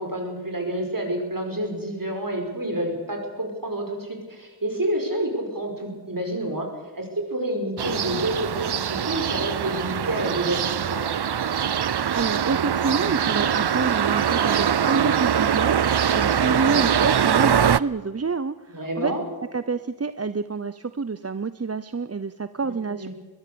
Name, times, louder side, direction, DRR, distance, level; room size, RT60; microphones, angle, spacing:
voice 1, 0.0-6.7 6.9-11.1 16.2-16.8 18.7-19.2 22.6-23.1, right 1 dB, 55° right, 3 dB, 5.5 m, -29 dB
sound 1, 7.8-17.8, right 8 dB, 80° right, 0.6 m, -23 dB
voice 2, 11.9-19.1 19.5-23.1, right 4 dB, 40° right, 13 dB, 0.7 m, -28 dB
22.0 x 22.0 x 7.0 m, 1.3 s
wide cardioid pair, 45°, 40 cm